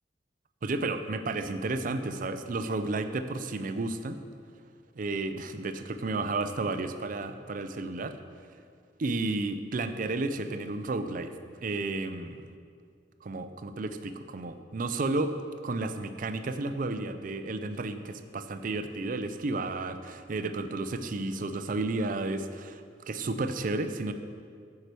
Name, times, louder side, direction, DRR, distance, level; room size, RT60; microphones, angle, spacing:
voice 1, 0.6-4.2 5.0-8.2 9.0-11.3 11.6-12.4 13.2-15.3 15.6-22.7 23.1-24.1, right 2 dB, 50° right, 9 dB, 0.5 m, -32 dB
8.6 x 4.7 x 6.8 m, 2.2 s
head